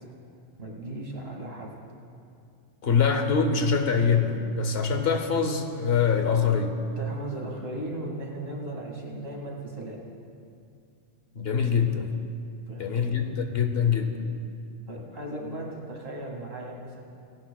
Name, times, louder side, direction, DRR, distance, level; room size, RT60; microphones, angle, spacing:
voice 1, 0.6-1.7 7.0-10.0 12.7-13.3 14.9-17.0, right 1 dB, 60° right, -1 dB, 2.3 m, -37 dB
voice 2, 2.8-6.8 11.3-12.1 12.8-14.2, left 6 dB, 60° left, 6 dB, 1.0 m, -24 dB
18.0 x 17.0 x 2.3 m, 2.4 s
omnidirectional pair, 1.2 m